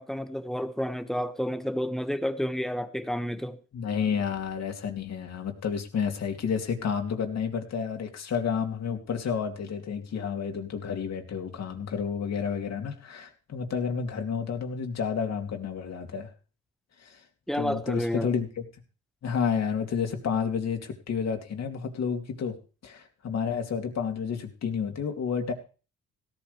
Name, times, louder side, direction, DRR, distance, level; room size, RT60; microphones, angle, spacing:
voice 1, 0.0-3.6 17.5-18.3, equal, ahead, 1.5 m, -30 dB
voice 2, 3.7-16.3 17.0-17.2 17.6-18.6 19.2-22.5 22.8-25.5, left 6 dB, 60° left, 3.0 m, -30 dB
17.0 x 12.5 x 3.4 m
cardioid pair, 90°, 30 cm